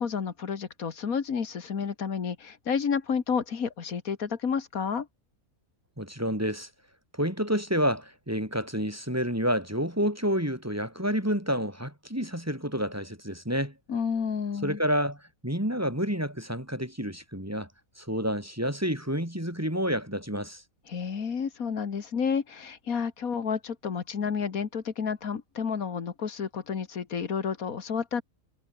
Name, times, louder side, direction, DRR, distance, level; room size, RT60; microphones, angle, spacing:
voice 1, 0.0-5.1 13.9-14.8 20.9-28.2, left 6 dB, 80° left, 2.1 m, -30 dB
voice 2, 6.0-6.7 7.1-13.7 14.6-17.7 18.0-20.6, equal, 10° right, 3.8 m, -29 dB
omnidirectional pair, 1.5 m